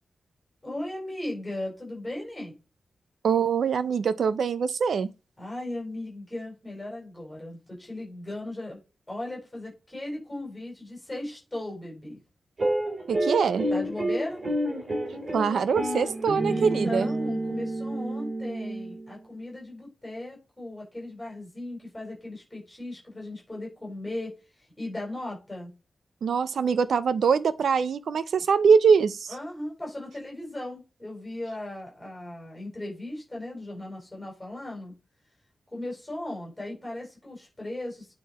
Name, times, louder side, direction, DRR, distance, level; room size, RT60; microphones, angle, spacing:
voice 1, 0.6-2.5 5.4-8.8 9.1-12.2 13.7-14.4 16.4-25.7 29.3-34.9 35.7-38.1, left 1 dB, 10° left, 4.8 m, -37 dB
voice 2, 3.2-5.1 13.1-13.7 15.3-17.1 26.2-29.3, right 6 dB, 80° right, 0.6 m, -23 dB
sound 1, 12.6-19.1, right 1 dB, 35° right, 3.1 m, -29 dB
9.4 x 4.3 x 4.3 m
wide cardioid pair, 145°, 0 cm